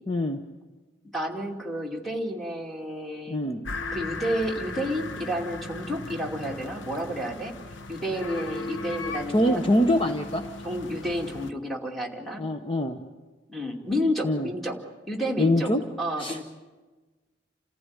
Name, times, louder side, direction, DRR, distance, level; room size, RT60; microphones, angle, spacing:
voice 1, 0.1-0.4 3.3-3.6 9.3-10.4 12.4-13.0 14.2-14.5 15.4-15.8 16.2-16.4, left 1 dB, 30° left, 5 dB, 0.9 m, -24 dB
voice 2, 1.1-3.4 3.9-7.5 7.9-9.6 10.6-12.4 13.5-14.8 15.1-15.7 16.0-16.4, equal, ahead, -2 dB, 2.5 m, -30 dB
sound 1, 3.6-11.5, left 3 dB, 85° left, 1.1 m, -37 dB
29.0 x 15.0 x 9.7 m, 1.3 s
head